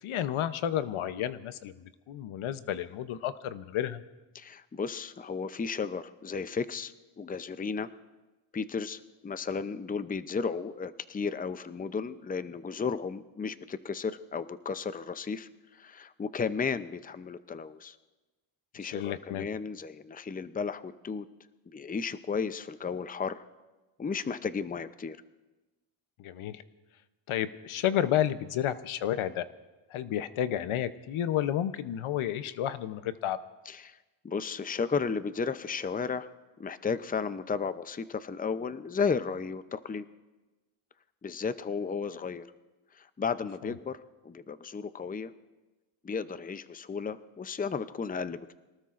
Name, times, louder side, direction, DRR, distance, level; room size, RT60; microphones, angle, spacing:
voice 1, 0.0-4.0 18.8-19.5 26.2-26.6 27.3-29.5 29.9-33.4 43.6-43.7, left 11 dB, 80° left, 13 dB, 0.8 m, -31 dB
voice 2, 4.3-7.9 8.5-15.5 15.8-17.9 18.7-21.3 21.7-23.4 24.0-25.2 33.7-34.0 34.2-36.3 36.6-40.1 41.2-42.5 43.0-44.0 44.2-45.3 46.0-48.6, left 5 dB, 20° left, 13 dB, 0.6 m, -34 dB
26.0 x 19.0 x 2.5 m, 1.2 s
cardioid pair, 80°, 48 cm